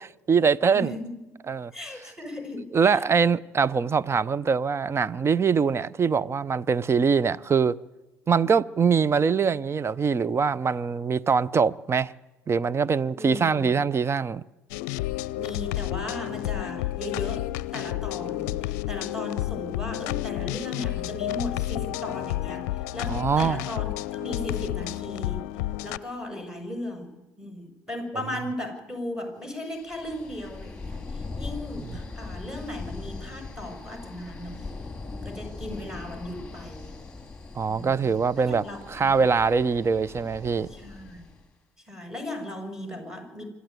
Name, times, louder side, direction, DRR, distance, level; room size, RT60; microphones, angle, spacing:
voice 1, 0.0-0.9 1.5-1.7 2.7-7.8 8.3-12.1 12.5-14.4 23.1-23.6 37.6-38.6 38.9-40.7, right 5 dB, 30° right, 0.7 m, -23 dB
voice 2, 0.7-1.3 1.7-3.0 13.1-13.9 15.4-25.5 25.8-34.7 35.2-36.9 37.7-38.0 38.4-39.2 40.7-41.2 41.9-43.4, left 1 dB, 5° right, 6.2 m, -37 dB
sound 1, 14.7-26.0, left 16 dB, 65° left, 0.6 m, -31 dB
sound 2, 29.7-41.4, left 3 dB, 10° left, 3.6 m, -40 dB
25.5 x 12.5 x 9.3 m
figure-of-eight pair, 60°, 9 cm